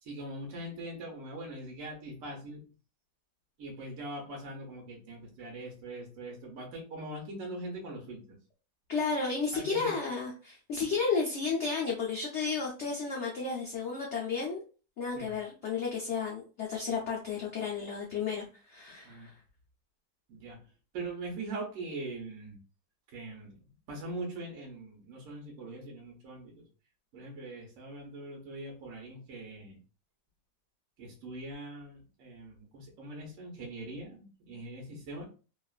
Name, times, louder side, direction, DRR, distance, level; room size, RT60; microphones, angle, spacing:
voice 1, 0.0-2.6 3.6-8.4 9.5-9.9 15.1-15.3 19.0-19.3 20.3-20.6 20.9-22.6 23.1-26.6 27.1-29.8 31.0-35.2, right 2 dB, 55° right, -1 dB, 1.1 m, -42 dB
voice 2, 8.9-14.6 15.0-19.3, left 5 dB, 90° left, -2 dB, 0.6 m, -32 dB
2.9 x 2.4 x 2.3 m, 0.36 s
omnidirectional pair, 2.0 m